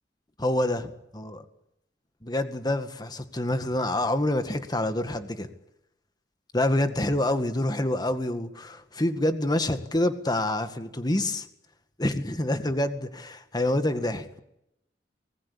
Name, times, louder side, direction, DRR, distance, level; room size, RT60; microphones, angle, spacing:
voice 1, 0.4-1.4 2.2-5.5 6.5-11.5 12.0-14.4, left 1 dB, 25° left, 8 dB, 1.9 m, -27 dB
24.5 x 20.0 x 8.7 m, 0.83 s
head